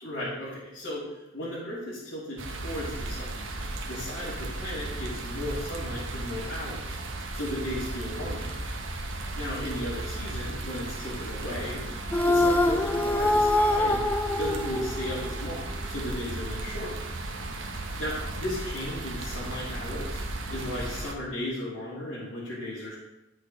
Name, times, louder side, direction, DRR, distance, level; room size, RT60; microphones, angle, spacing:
voice 1, 0.0-3.4 3.8-7.0 7.3-8.6 9.3-11.8 12.3-14.0 14.4-17.0 18.0-20.2 20.5-23.0, left 1 dB, 75° left, -11 dB, 3.0 m, -35 dB
sound 1, 2.4-21.2, right 2 dB, 85° right, 1.1 m, -35 dB
sound 2, 12.1-15.5, left 1 dB, 10° left, 0.4 m, -24 dB
12.0 x 6.4 x 3.2 m, 0.93 s
head